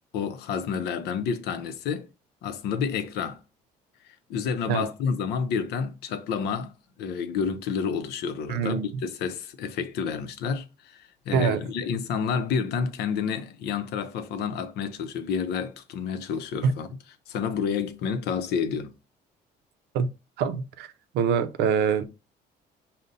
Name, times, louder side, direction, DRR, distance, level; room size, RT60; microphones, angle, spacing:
voice 1, 0.1-2.1 2.4-3.4 4.3-16.9 17.3-18.9, left 6 dB, 80° left, 0.6 m, -29 dB
voice 2, 8.5-8.9 11.3-11.6 16.6-16.7 19.9-20.1 20.4-20.9 21.1-22.0, right 6 dB, 80° right, 0.5 m, -24 dB
5.2 x 2.1 x 3.9 m
cardioid pair, 110°, 17 cm